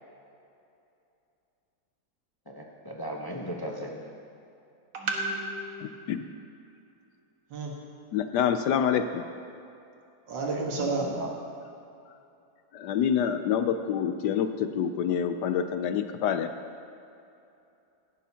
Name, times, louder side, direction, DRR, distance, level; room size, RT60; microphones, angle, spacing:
voice 1, 2.5-4.1 10.5-11.3, equal, 30° left, -1 dB, 0.4 m, -37 dB
voice 2, 4.9-6.0 7.5-7.7 10.3-11.1, right 3 dB, 80° right, -1 dB, 2.2 m, -31 dB
voice 3, 5.8-6.2 8.1-9.2 12.7-16.5, left 8 dB, 75° left, 9 dB, 1.1 m, -27 dB
15.5 x 11.5 x 2.8 m, 2.7 s
omnidirectional pair, 1.9 m